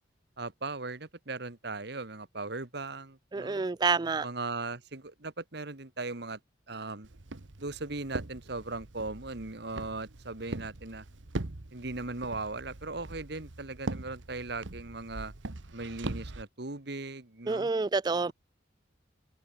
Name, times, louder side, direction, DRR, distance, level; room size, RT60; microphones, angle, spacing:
voice 1, 0.4-3.7 4.2-6.4 6.7-7.1 7.6-11.1 11.7-15.3 15.7-17.7, right 3 dB, 60° right, 1.7 m, -38 dB
voice 2, 3.3-4.3 17.5-18.3, right 4 dB, 20° right, 0.3 m, -28 dB
Walk footsteps, 7.0-16.4, right 2 dB, 80° right, 1.4 m, -41 dB
head